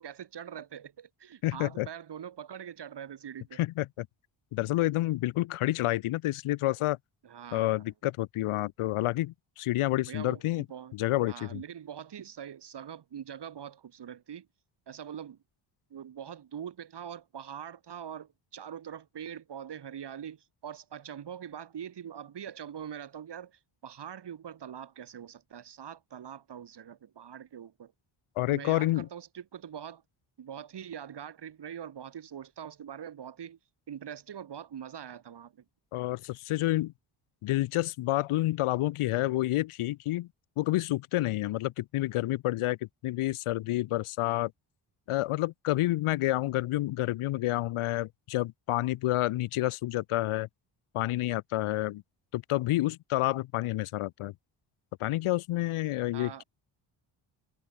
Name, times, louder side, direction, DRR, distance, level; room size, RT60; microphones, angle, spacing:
voice 1, 0.0-3.6 7.2-7.7 10.0-10.4 10.7-10.9 11.3-14.5 14.9-15.4 15.9-27.9 28.5-30.0 30.4-33.6 33.9-35.5 56.1-56.4, right 9 dB, 55° right, 3.3 m, -43 dB
voice 2, 1.4-1.9 3.6-4.1 4.5-7.0 7.5-10.6 10.9-11.6 28.4-29.1 35.9-36.9 37.4-40.3 40.6-42.8 43.0-44.5 45.1-50.5 50.9-52.0 52.3-54.3 55.0-56.4, left 16 dB, 85° left, 1.7 m, -29 dB
cardioid pair, 80°, 49 cm